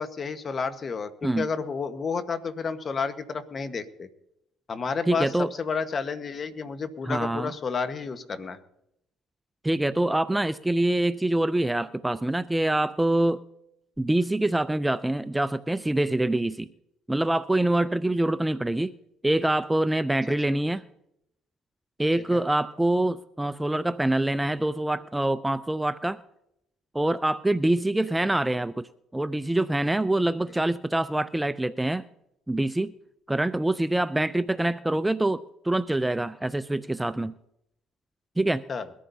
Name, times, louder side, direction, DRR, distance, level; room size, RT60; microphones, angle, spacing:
voice 1, 0.0-4.1 4.7-8.6 22.3-22.4 38.7-38.9, left 5 dB, 40° left, 9 dB, 1.3 m, -31 dB
voice 2, 5.1-5.5 7.1-7.5 9.6-13.4 14.0-16.7 17.1-18.9 19.2-20.8 22.0-26.2 26.9-32.1 32.5-32.9 33.3-37.3 38.4-38.6, right 1 dB, 10° right, 15 dB, 0.4 m, -25 dB
22.0 x 14.0 x 2.8 m, 0.81 s
supercardioid pair, 75°, 0 cm